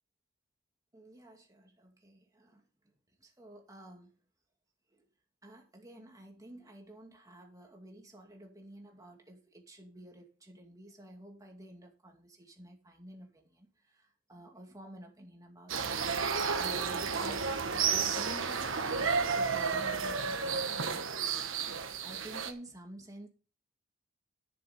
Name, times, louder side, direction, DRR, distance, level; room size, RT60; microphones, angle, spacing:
voice 1, 0.9-2.6 3.2-4.1 4.9-5.0 5.4-17.5 17.8-21.0 22.0-23.3, right 1 dB, 15° right, 2 dB, 2.4 m, -51 dB
sound 1, 15.7-22.5, right 5 dB, 70° right, 1.2 m, -32 dB
11.0 x 7.0 x 5.3 m, 0.36 s
head